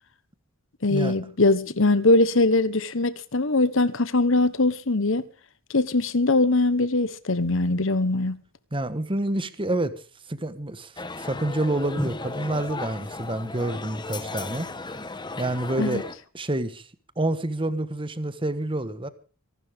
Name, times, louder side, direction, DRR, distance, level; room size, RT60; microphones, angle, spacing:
voice 1, 0.8-5.2 5.7-8.4 15.8-16.0, left 2 dB, 65° left, 1.2 m, -21 dB
voice 2, 8.7-9.9 10.3-10.9 11.2-14.7 15.4-16.0 16.3-16.8 17.2-19.1, right 1 dB, 25° right, 1.4 m, -28 dB
sound 1, 11.0-16.1, left 2 dB, 20° left, 1.3 m, -35 dB
25.5 x 12.0 x 3.7 m
head